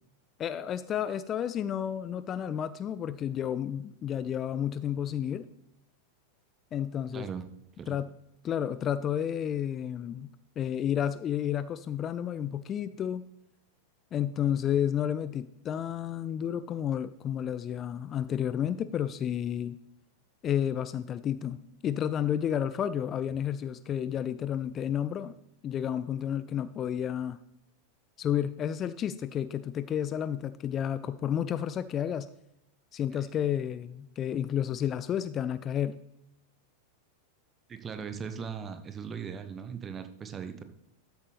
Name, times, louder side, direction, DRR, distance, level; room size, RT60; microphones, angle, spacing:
voice 1, 0.4-5.5 6.7-7.3 7.9-8.1 8.4-10.3 10.6-13.2 14.1-19.8 20.4-25.3 25.6-27.4 28.2-32.3 32.9-36.0, left 9 dB, 30° left, 15 dB, 0.3 m, -31 dB
voice 2, 7.1-7.5 7.8-8.0 33.1-33.2 37.7-40.6, right 6 dB, 20° right, 9 dB, 1.0 m, -39 dB
13.0 x 7.9 x 3.4 m, 0.85 s
figure-of-eight pair, 90°, 0 cm